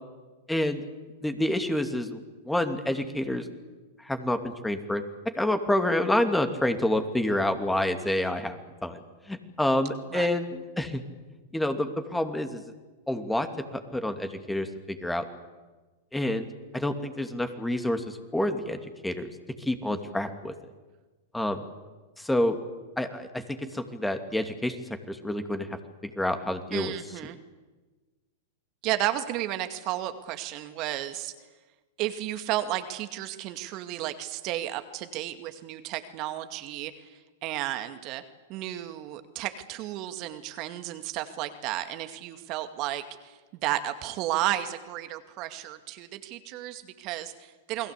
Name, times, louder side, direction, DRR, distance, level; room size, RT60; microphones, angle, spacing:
voice 1, 0.5-0.8 1.2-2.2 2.4-3.4 4.0-5.0 5.3-9.0 9.3-11.0 11.5-12.6 13.1-15.2 16.1-16.5 16.7-19.3 19.7-20.5 21.3-21.6 22.2-22.6 23.0-24.8 25.1-25.7 26.2-26.9, left 1 dB, 5° left, 7 dB, 2.7 m, -28 dB
voice 2, 26.7-27.4 28.8-31.3 32.0-37.1 37.4-38.2 38.5-47.9, right 14 dB, 45° right, 8 dB, 2.2 m, -33 dB
29.0 x 21.0 x 8.5 m, 1.3 s
hypercardioid pair, 105°, 0 cm